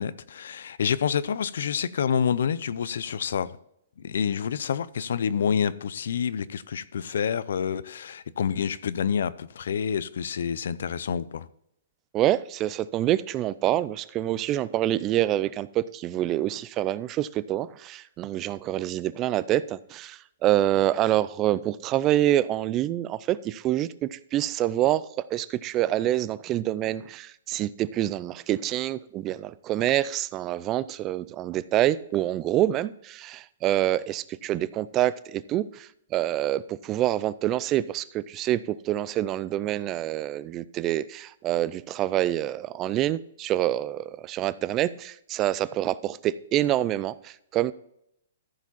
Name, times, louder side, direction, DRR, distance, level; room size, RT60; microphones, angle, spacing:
voice 1, 0.0-3.5 4.0-11.5, left 7 dB, 70° left, 0.6 m, -28 dB
voice 2, 12.1-25.0 25.3-38.6 38.9-47.7, right 13 dB, 25° right, 0.4 m, -26 dB
14.0 x 5.0 x 4.2 m
hypercardioid pair, 155°, 0 cm